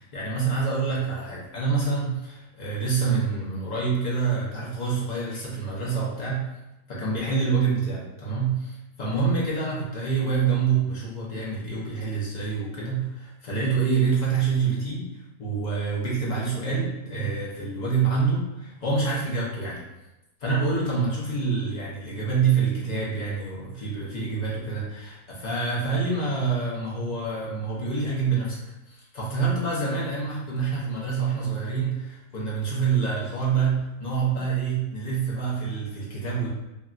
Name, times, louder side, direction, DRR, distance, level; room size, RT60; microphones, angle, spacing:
voice 1, 0.0-6.4 6.9-15.1 15.4-19.8 20.4-28.6 28.9-36.5, right 5 dB, 50° left, -6 dB, 0.5 m, -26 dB
3.1 x 2.3 x 2.5 m, 0.97 s
omnidirectional pair, 1.6 m